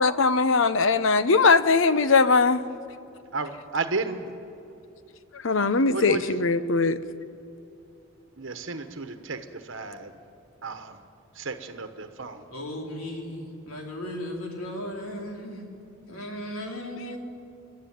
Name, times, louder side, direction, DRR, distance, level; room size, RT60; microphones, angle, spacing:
voice 1, 0.0-2.6 5.3-7.0, left 4 dB, 60° left, 13 dB, 0.7 m, -20 dB
voice 2, 3.3-4.2 5.9-6.2 8.4-9.4 9.7-10.1 10.6-10.9 11.4-12.4, right 3 dB, 60° right, 8 dB, 1.2 m, -32 dB
voice 3, 12.5-15.7 16.1-17.2, left 1 dB, 85° left, 1 dB, 3.4 m, -36 dB
28.5 x 11.5 x 9.4 m, 2.7 s
head